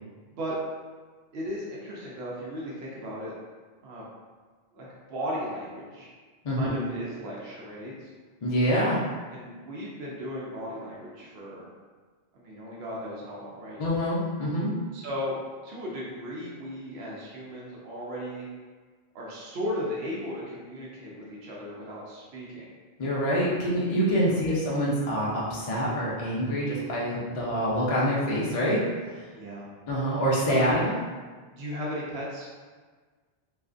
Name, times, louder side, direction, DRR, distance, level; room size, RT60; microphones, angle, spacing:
voice 1, 1.3-3.3 3.8-4.1 4.7-6.1 6.5-8.1 9.3-11.7 12.3-13.8 14.9-15.4 15.6-18.5 19.1-22.7 24.1-24.5 29.3-29.7 30.6-30.7 31.6-32.5, equal, 75° right, -5 dB, 0.8 m, -36 dB
voice 2, 6.4-6.8 8.4-9.0 13.8-14.7 23.0-28.8 29.9-30.9, equal, 45° left, -6 dB, 0.5 m, -26 dB
2.4 x 2.3 x 2.4 m, 1.4 s
omnidirectional pair, 1.1 m